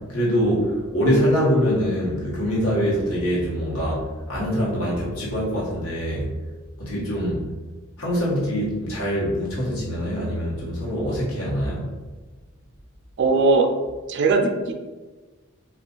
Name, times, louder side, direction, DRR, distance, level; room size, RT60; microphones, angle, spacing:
voice 1, 0.0-6.4 6.8-7.4 8.0-11.9, equal, 75° left, -5 dB, 1.1 m, -24 dB
voice 2, 13.2-13.7 14.1-14.7, right 3 dB, 55° right, 4 dB, 0.4 m, -19 dB
2.4 x 2.4 x 3.8 m, 1.3 s
head